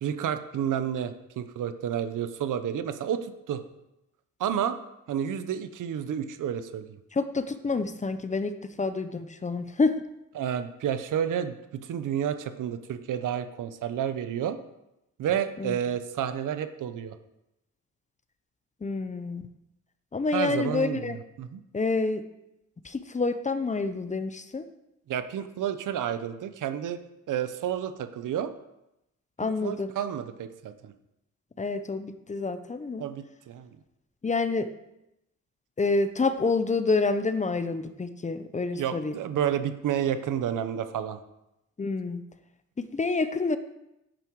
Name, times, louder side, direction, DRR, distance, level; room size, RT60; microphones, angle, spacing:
voice 1, 0.0-3.6 4.4-4.8 5.1-7.0 10.3-14.6 15.2-17.2 20.3-21.6 25.1-27.0 27.3-28.5 29.4-30.9 33.0-33.7 38.7-41.2, right 9 dB, 85° right, 10 dB, 0.9 m, -30 dB
voice 2, 7.1-8.5 8.8-10.0 15.6-15.8 18.8-19.4 20.1-21.2 21.7-22.2 22.8-24.6 29.4-29.9 31.6-33.0 34.2-34.7 35.8-39.1 41.8-42.2 42.8-43.6, left 3 dB, 25° left, 10 dB, 0.7 m, -28 dB
10.5 x 9.1 x 4.7 m, 0.89 s
cardioid pair, 115°, 30 cm